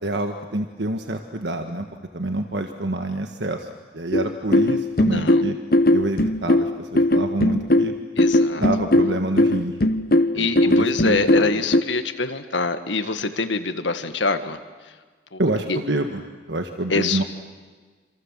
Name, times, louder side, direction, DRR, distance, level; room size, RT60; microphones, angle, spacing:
voice 1, 0.0-1.9 2.1-3.7 3.9-5.6 5.9-7.9 8.6-9.7 10.3-11.5 15.4-16.2 16.5-17.2, right 2 dB, 70° right, 5 dB, 1.5 m, -27 dB
sound 1, 4.1-11.8, left 1 dB, 50° left, 1.1 m, -19 dB
voice 2, 5.0-5.4 8.2-8.7 10.3-14.6 15.3-15.4 15.7-15.8 16.9-17.2, left 3 dB, 80° left, 9 dB, 1.8 m, -25 dB
27.5 x 26.5 x 7.6 m, 1.4 s
head